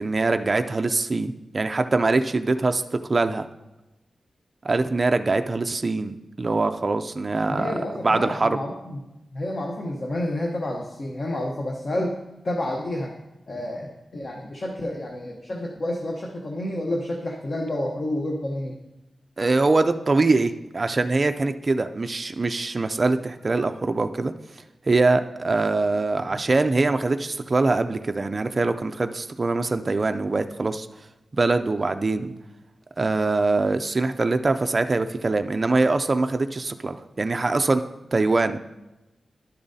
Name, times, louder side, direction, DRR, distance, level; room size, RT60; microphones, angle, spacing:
voice 1, 0.0-3.4 4.6-7.7 8.0-8.6 19.4-24.3 24.9-30.9 31.3-32.3 33.0-37.8 38.1-38.6, right 3 dB, 30° right, 7 dB, 0.3 m, -23 dB
voice 2, 7.5-9.0 9.3-12.2 12.4-13.1 13.5-18.7, left 1 dB, 40° left, 0 dB, 0.8 m, -29 dB
11.5 x 7.0 x 2.7 m, 1.0 s
wide cardioid pair, 165°, 0 cm